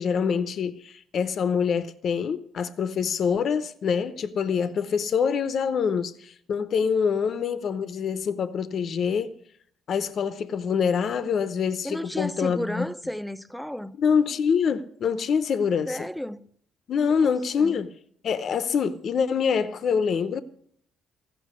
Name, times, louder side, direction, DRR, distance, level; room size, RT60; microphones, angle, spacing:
voice 1, 0.0-9.3 9.9-12.9 14.0-16.1 16.9-17.9 18.2-20.4, left 6 dB, 55° left, 0.8 m, -25 dB
voice 2, 11.8-14.0 15.9-16.5 17.2-17.8, equal, ahead, 0.7 m, -33 dB
15.0 x 6.0 x 9.5 m
cardioid pair, 85°, 0 cm